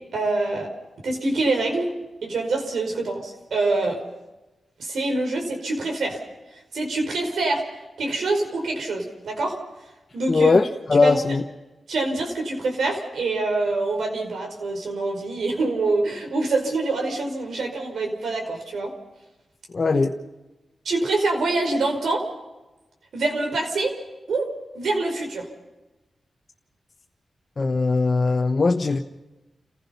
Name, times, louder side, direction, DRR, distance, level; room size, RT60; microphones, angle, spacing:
voice 1, 0.1-0.7 1.0-1.9 2.2-4.0 4.8-6.2 6.7-7.6 8.0-9.6 10.1-10.5 10.9-11.2 11.9-18.9 20.8-22.2 23.1-24.0 24.3-24.5 24.7-25.5, right 2 dB, 80° right, 5.0 m, -25 dB
voice 2, 10.3-11.4 19.7-20.2 27.6-29.0, left 3 dB, 45° left, 1.2 m, -20 dB
29.5 x 15.5 x 5.7 m
cardioid pair, 55°, 0 cm